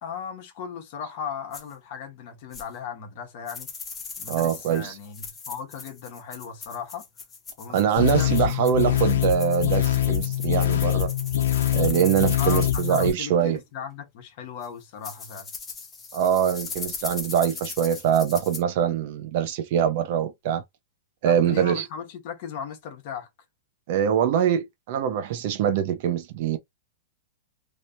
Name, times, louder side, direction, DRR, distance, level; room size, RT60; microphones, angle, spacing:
voice 1, 0.0-3.7 4.2-7.0 7.6-8.5 12.4-15.5 21.2-23.3, left 7 dB, 40° left, 1.2 m, -37 dB
sound 1, 1.5-1.6 2.5-2.6 3.5-13.1 14.6-14.7 15.0-18.6, left 5 dB, 10° left, 0.8 m, -38 dB
voice 2, 4.3-5.0 7.7-11.1 11.7-13.6 16.1-20.6 21.2-21.9 23.9-26.6, right 9 dB, 40° right, 0.6 m, -23 dB
sound 2, 8.0-13.1, left 12 dB, 85° left, 0.8 m, -24 dB
3.2 x 3.0 x 2.7 m
supercardioid pair, 180°, 0 cm